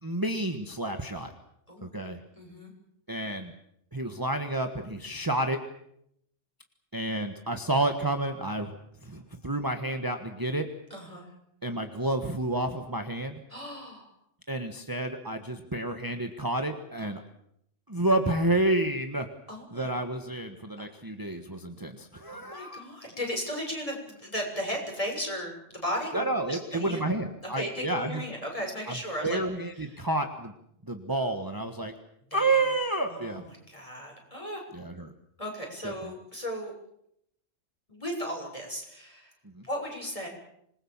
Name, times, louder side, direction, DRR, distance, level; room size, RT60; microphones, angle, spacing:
voice 1, 0.0-1.3 1.8-2.2 3.1-3.5 3.9-5.6 6.9-8.7 9.0-10.7 11.6-13.4 14.5-17.2 17.9-19.3 19.7-22.8 26.1-28.2 28.9-30.5 30.8-31.9 32.3-33.4 34.7-35.1 35.8-36.1 39.5-39.6, right 2 dB, 20° right, 5 dB, 1.4 m, -30 dB
voice 2, 2.3-2.7 10.9-11.3 13.5-14.1 17.0-17.1 19.5-19.9 22.3-27.0 27.5-29.4 32.3-32.6 33.1-33.4 33.7-34.6 35.4-36.7 37.9-39.3 39.6-40.3, equal, 30° left, 1 dB, 6.8 m, -36 dB
26.5 x 21.0 x 7.3 m, 0.75 s
omnidirectional pair, 1.2 m